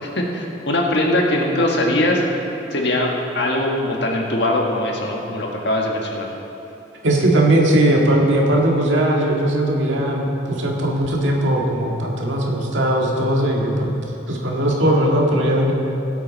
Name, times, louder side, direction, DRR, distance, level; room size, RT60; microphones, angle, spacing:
voice 1, 0.0-2.2 2.7-3.1 3.3-6.3, left 1 dB, 65° left, 0 dB, 1.6 m, -21 dB
voice 2, 7.0-13.9 14.3-15.7, right 1 dB, 85° right, -1 dB, 1.9 m, -18 dB
17.5 x 8.2 x 4.1 m, 3.0 s
head